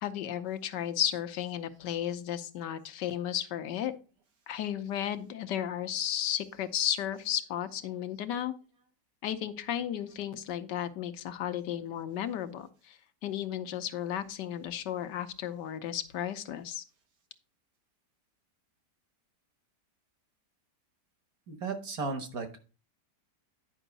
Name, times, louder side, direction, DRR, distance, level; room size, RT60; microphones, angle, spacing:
voice 1, 0.0-3.9 4.5-8.5 9.2-16.8, left 10 dB, 80° left, 10 dB, 1.4 m, -34 dB
voice 2, 21.5-22.6, right 4 dB, 60° right, 6 dB, 1.8 m, -35 dB
10.0 x 5.5 x 4.0 m, 0.35 s
omnidirectional pair, 1.8 m